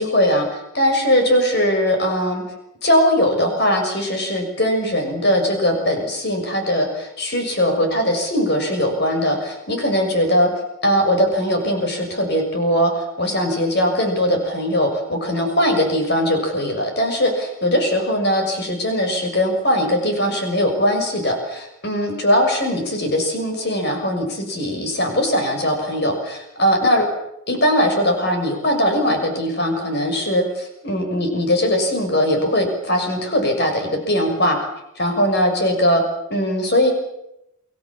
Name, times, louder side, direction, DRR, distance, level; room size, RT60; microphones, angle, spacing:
voice 1, 0.0-2.4 2.8-10.5 10.8-27.1 27.5-34.6 35.0-36.0 36.3-36.9, equal, 50° left, 4 dB, 6.4 m, -20 dB
29.5 x 21.0 x 7.4 m, 0.85 s
head